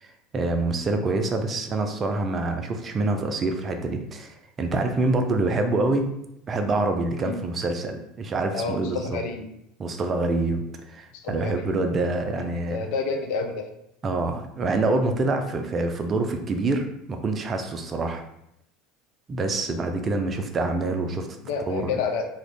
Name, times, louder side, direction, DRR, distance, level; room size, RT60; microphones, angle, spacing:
voice 1, 0.0-6.1 6.5-9.2 9.8-12.9 14.0-18.2 19.3-21.3 21.7-21.9, right 2 dB, 35° right, 5 dB, 0.4 m, -26 dB
voice 2, 8.5-9.4 11.2-11.7 12.4-13.7 19.7-19.8 21.4-22.2, left 5 dB, 60° left, 3 dB, 0.5 m, -30 dB
2.7 x 2.5 x 3.3 m, 0.79 s
figure-of-eight pair, 70°, 0 cm